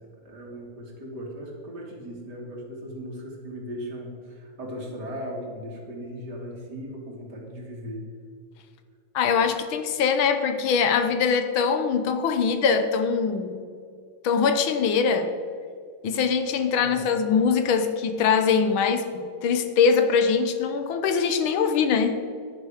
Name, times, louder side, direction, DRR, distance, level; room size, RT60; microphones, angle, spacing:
voice 1, 0.2-8.0 16.7-17.2, equal, 55° right, 0 dB, 2.7 m, -37 dB
voice 2, 9.1-13.5 14.2-15.3 16.0-22.2, left 6 dB, 80° left, 8 dB, 1.7 m, -22 dB
10.5 x 10.5 x 5.1 m, 2.2 s
omnidirectional pair, 2.2 m